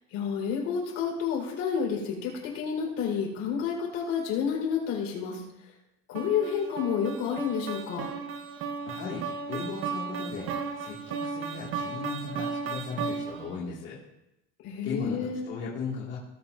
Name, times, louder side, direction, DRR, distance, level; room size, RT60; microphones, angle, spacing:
voice 1, 0.1-5.4 6.1-8.1 14.6-15.4, left 7 dB, 55° left, -2 dB, 4.5 m, -30 dB
sound 1, 6.1-13.6, right 5 dB, 45° right, 1.0 m, -35 dB
voice 2, 8.9-9.2 9.5-10.5 10.8-14.0 14.8-16.2, left 4 dB, 40° left, -7 dB, 2.4 m, -36 dB
19.0 x 8.7 x 2.7 m, 0.89 s
cardioid pair, 160°, 30 cm